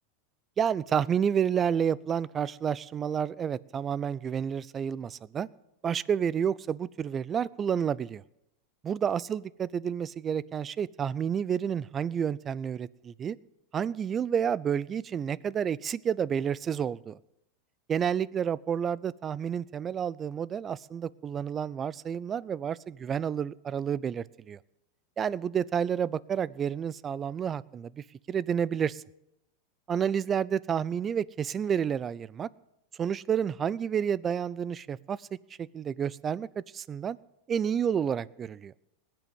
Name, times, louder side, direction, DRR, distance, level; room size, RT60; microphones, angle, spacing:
voice 1, 0.6-5.5 5.8-8.2 8.8-13.4 13.7-17.2 17.9-24.6 25.2-29.0 29.9-32.5 33.0-35.3 35.6-37.2 37.5-38.7, right 8 dB, 30° right, 22 dB, 0.5 m, -30 dB
19.5 x 7.7 x 8.1 m, 0.85 s
hypercardioid pair, 100°, 0 cm